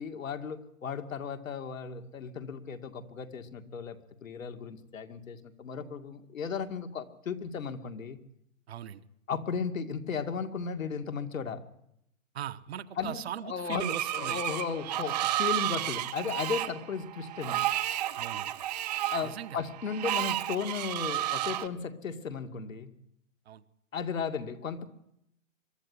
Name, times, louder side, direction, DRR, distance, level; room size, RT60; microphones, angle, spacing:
voice 1, 0.0-8.2 9.3-11.6 13.0-17.6 19.1-22.9 23.9-24.9, left 6 dB, 75° left, 6 dB, 2.3 m, -35 dB
voice 2, 8.7-9.0 12.3-14.4 18.2-18.5 19.2-19.6 23.5-23.6, right 10 dB, 50° right, 12 dB, 1.2 m, -39 dB
Screech, 13.7-21.7, right 13 dB, 30° right, 0.8 m, -32 dB
23.0 x 13.0 x 9.6 m, 0.75 s
hypercardioid pair, 155°, 40 cm